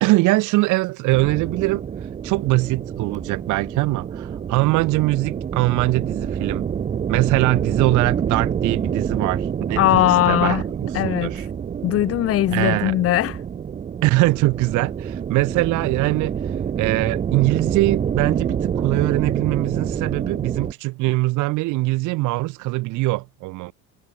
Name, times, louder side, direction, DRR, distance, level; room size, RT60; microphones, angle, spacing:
voice 1, 0.0-1.8 2.2-6.7 7.1-11.4 12.5-12.9 14.0-16.4 16.8-23.7, right 21 dB, 70° right, 0.8 m, -22 dB
sound 1, 1.1-20.7, right 8 dB, 25° right, 0.5 m, -27 dB
voice 2, 9.8-10.6 10.9-11.5 11.8-13.4, left 14 dB, 50° left, 0.7 m, -20 dB
cardioid pair, 130°, 31 cm